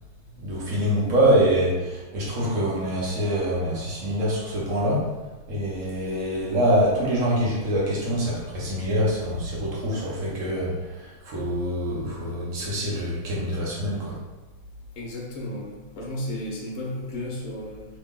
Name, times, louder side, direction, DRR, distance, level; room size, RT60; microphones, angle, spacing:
voice 1, 0.4-5.2 5.5-14.2, equal, 55° right, -4 dB, 1.0 m, -25 dB
voice 2, 15.0-17.9, left 1 dB, 60° left, -3 dB, 0.9 m, -33 dB
3.0 x 2.9 x 3.6 m, 1.1 s
omnidirectional pair, 2.2 m